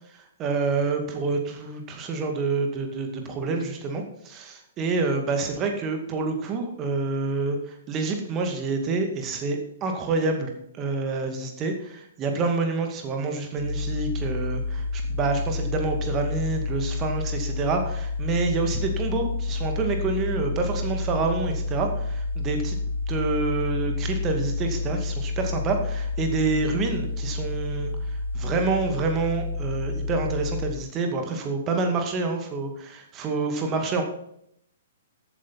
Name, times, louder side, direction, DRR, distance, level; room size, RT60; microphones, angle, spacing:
voice 1, 0.4-7.6 7.9-22.8 23.1-27.9 28.3-34.0, right 4 dB, 25° right, 4 dB, 2.2 m, -27 dB
sound 1, 13.6-30.7, left 3 dB, 85° left, 2.6 m, -29 dB
13.5 x 8.8 x 4.2 m, 0.71 s
figure-of-eight pair, 115°, 0 cm